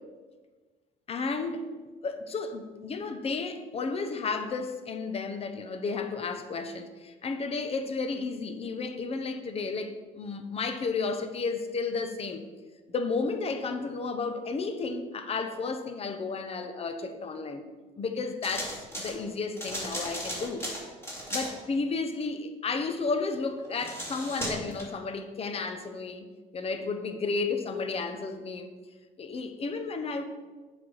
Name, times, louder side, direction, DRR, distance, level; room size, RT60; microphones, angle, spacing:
voice 1, 1.1-12.4 12.9-17.6 18.0-20.7 21.3-28.7 29.2-30.2, left 4 dB, 35° left, 8 dB, 0.8 m, -32 dB
sound 1, 18.4-19.1 19.6-21.5 23.6-24.8, equal, 15° left, 2.6 m, -35 dB
7.4 x 4.3 x 6.4 m, 1.4 s
cardioid pair, 110°, 17 cm